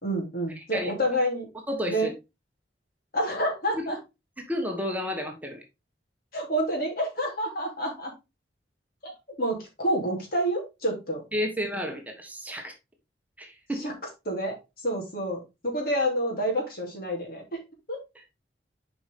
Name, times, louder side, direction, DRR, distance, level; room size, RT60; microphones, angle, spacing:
voice 1, 0.0-1.4 1.9-2.1 3.1-4.0 6.3-8.1 9.0-9.1 9.4-11.2 13.8-13.9 14.2-14.6 14.8-17.6 17.9-18.0, equal, 60° left, 3.0 m, -28 dB
voice 2, 0.6-0.9 1.7-2.1 3.7-3.9 4.4-5.6 11.3-12.7 13.4-13.9 18.1-18.2, equal, 10° right, 1.3 m, -31 dB
7.1 x 5.1 x 3.5 m
head